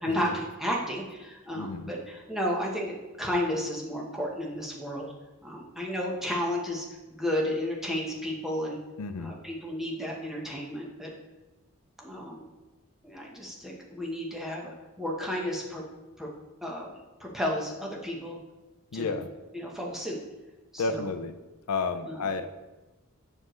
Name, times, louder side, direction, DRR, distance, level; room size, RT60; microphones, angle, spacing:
voice 1, 0.0-5.1 5.4-8.8 9.2-11.1 12.0-12.5 13.0-14.7 15.0-15.8 16.2-16.3 16.6-18.4 18.9-19.2 19.5-20.2 20.7-21.1 22.0-22.3, equal, ahead, -3 dB, 1.0 m, -32 dB
voice 2, 1.5-1.9 9.0-9.3 18.9-19.3 20.8-21.3 21.7-22.5, left 4 dB, 90° left, 10 dB, 0.5 m, -31 dB
7.3 x 6.4 x 3.1 m, 1.1 s
head